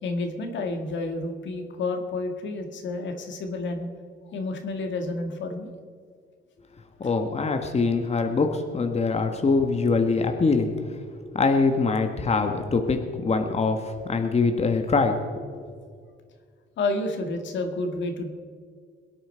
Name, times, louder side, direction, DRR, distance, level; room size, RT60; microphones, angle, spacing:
voice 1, 0.0-3.9 4.3-5.7 7.0-7.1 16.8-18.3, left 2 dB, 70° left, 5 dB, 1.9 m, -30 dB
voice 2, 7.0-10.7 11.3-13.8 14.1-15.4, left 4 dB, 30° left, 5 dB, 1.3 m, -23 dB
22.0 x 9.1 x 4.4 m, 2.1 s
cardioid pair, 90°, 20 cm